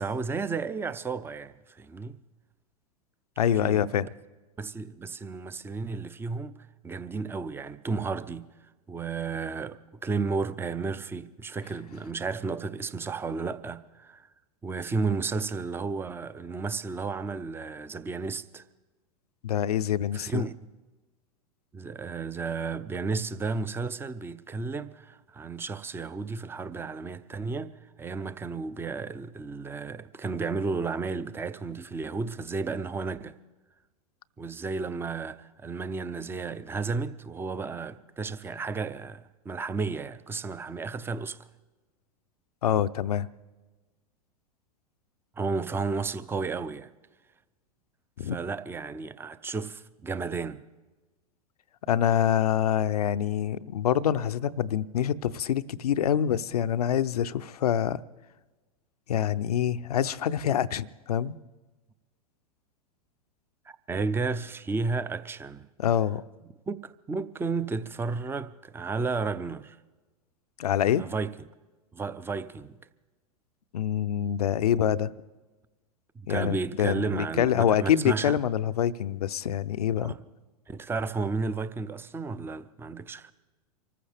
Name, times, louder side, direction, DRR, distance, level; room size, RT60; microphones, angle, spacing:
voice 1, 0.0-2.2 3.6-3.9 4.6-6.6 6.8-8.5 8.9-14.3 14.6-18.6 20.1-20.5 21.7-33.4 34.4-41.5 45.4-46.9 48.2-50.6 63.7-65.7 66.7-69.8 70.9-71.4 71.9-72.7 76.2-78.4 80.0-80.2 80.7-83.3, right 4 dB, 10° right, 0.6 m, -33 dB
voice 2, 3.4-4.1 19.4-20.4 42.6-43.3 48.2-48.4 51.9-58.0 59.1-61.4 65.8-66.2 70.6-71.0 73.7-75.1 76.3-80.1, left 9 dB, 75° left, 0.6 m, -26 dB
25.5 x 14.5 x 3.5 m
hypercardioid pair, 100°, 20 cm